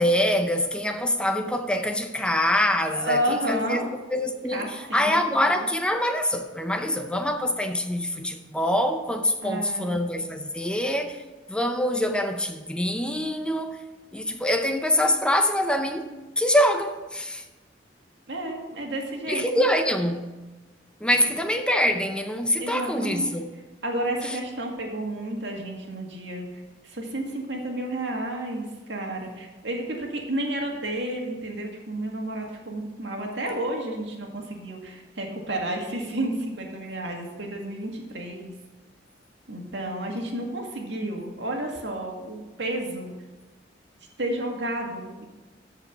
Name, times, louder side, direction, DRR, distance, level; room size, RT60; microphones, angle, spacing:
voice 1, 0.0-11.2 11.5-13.8 14.1-16.1 16.4-17.4 19.3-20.2 21.0-23.5 24.2-24.4, left 1 dB, 5° left, 0.6 m, -25 dB
voice 2, 2.8-3.8 4.5-5.5 9.4-10.0 18.3-19.6 22.6-23.3 23.8-38.5 39.5-43.1 44.0-45.3, right 1 dB, 90° right, 2.0 m, -31 dB
14.0 x 4.9 x 5.8 m
head